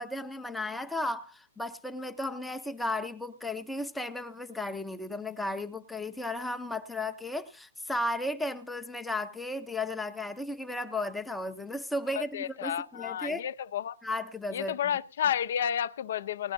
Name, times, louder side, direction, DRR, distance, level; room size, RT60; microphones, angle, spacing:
voice 1, 0.0-13.4 14.0-14.8, left 1 dB, 5° left, 0.6 m, -34 dB
voice 2, 12.1-14.0 14.5-16.5, left 9 dB, 60° left, 0.6 m, -31 dB
19.0 x 11.0 x 2.7 m
hypercardioid pair, 160°, 0 cm